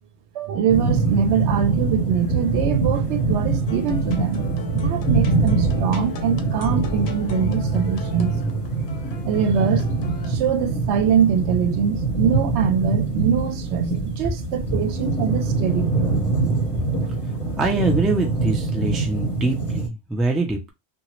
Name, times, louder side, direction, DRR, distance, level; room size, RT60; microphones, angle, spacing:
voice 1, 0.3-4.4 4.7-8.3 9.2-9.8 10.3-16.2, right 7 dB, 80° right, 0.9 m, -23 dB
sound 1, 0.7-19.9, right 3 dB, 35° left, 1.0 m, -24 dB
sound 2, 3.7-10.4, left 4 dB, 70° left, 0.9 m, -38 dB
voice 2, 17.6-20.7, right 2 dB, ahead, 0.3 m, -24 dB
2.9 x 2.3 x 2.9 m
omnidirectional pair, 1.1 m